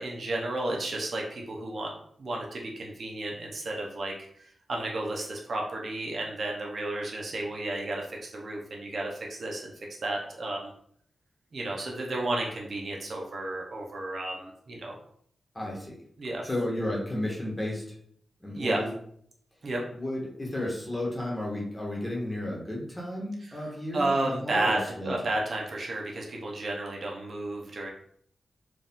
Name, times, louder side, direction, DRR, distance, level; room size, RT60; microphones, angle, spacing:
voice 1, 0.0-1.9 2.2-4.1 4.7-9.7 10.0-10.7 11.5-14.9 16.2-16.4 18.5-18.8 19.6-19.8 23.9-27.9, right 2 dB, 55° right, -1 dB, 0.8 m, -32 dB
voice 2, 15.5-16.0 16.4-17.8 18.4-18.9 19.9-25.1, left 1 dB, 15° left, -3 dB, 1.2 m, -33 dB
4.7 x 2.5 x 3.6 m, 0.65 s
wide cardioid pair, 145°, 0 cm